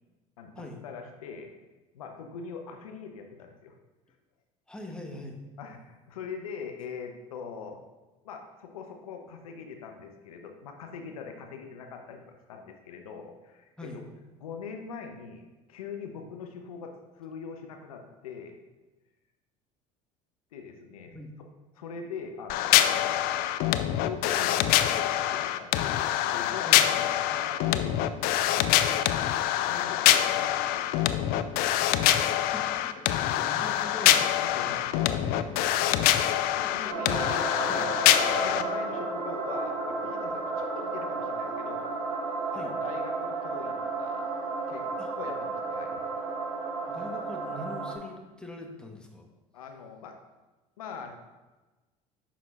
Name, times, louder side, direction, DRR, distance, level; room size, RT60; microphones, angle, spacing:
voice 1, 0.4-1.5 1.9-3.7 5.6-7.8 8.2-14.0 14.4-18.6 20.5-21.1 21.8-23.2 24.0-28.0 28.6-29.3 29.6-32.3 33.3-33.6 34.0-35.6 36.2-38.0 38.4-41.9 42.5-44.3 44.7-44.8 45.2-45.9 49.5-50.2 50.8-51.1, left 5 dB, 80° left, 4 dB, 0.7 m, -42 dB
voice 2, 4.7-5.4 13.8-14.0 21.1-21.3 26.7-26.9 32.3-34.3 35.1-35.6 36.6-37.0 37.6-37.9 42.5-42.7 45.0-45.1 46.9-49.3, left 1 dB, 5° left, 1 dB, 1.3 m, -43 dB
sound 1, 22.5-38.6, left 12 dB, 55° left, 0.4 m, -25 dB
sound 2, 36.9-47.9, right 3 dB, 75° right, 1.7 m, -33 dB
9.9 x 6.0 x 2.4 m, 1.2 s
hypercardioid pair, 70°, 18 cm